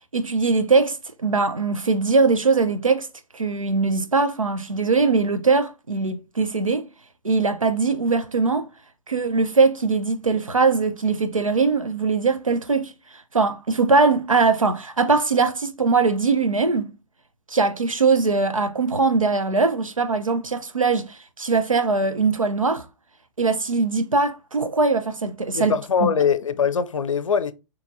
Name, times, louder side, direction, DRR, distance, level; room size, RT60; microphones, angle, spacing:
voice 1, 0.1-1.0 1.2-3.1 3.3-6.9 7.2-8.7 9.1-12.9 13.3-16.9 17.5-22.9 23.4-25.7, right 4 dB, 85° right, 0.6 m, -21 dB
voice 2, 25.5-27.5, left 6 dB, 75° left, 0.5 m, -22 dB
6.2 x 3.0 x 2.5 m
figure-of-eight pair, 110°, 17 cm